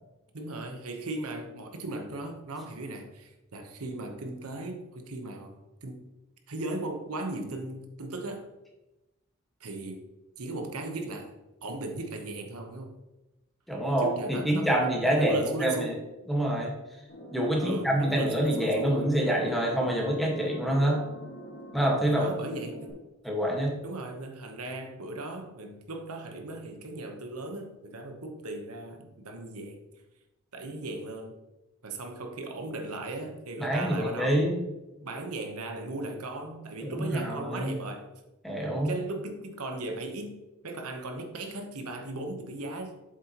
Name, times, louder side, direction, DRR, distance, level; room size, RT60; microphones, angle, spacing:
voice 1, 0.3-6.0 6.5-8.5 9.6-10.0 10.4-11.3 11.6-12.9 14.0-16.0 17.6-19.2 22.1-22.9 23.8-29.8 30.5-31.3 31.8-34.5 35.0-38.1 38.8-43.0, right 2 dB, 90° right, 4 dB, 1.1 m, -37 dB
voice 2, 13.7-15.9 16.3-16.7 17.3-21.0 21.7-22.2 23.2-23.7 33.6-34.6 36.8-37.7 38.4-38.9, right 1 dB, ahead, -2 dB, 1.6 m, -26 dB
sound 1, 17.1-22.9, equal, 55° left, 1.9 m, -43 dB
7.7 x 7.4 x 3.0 m, 1.0 s
head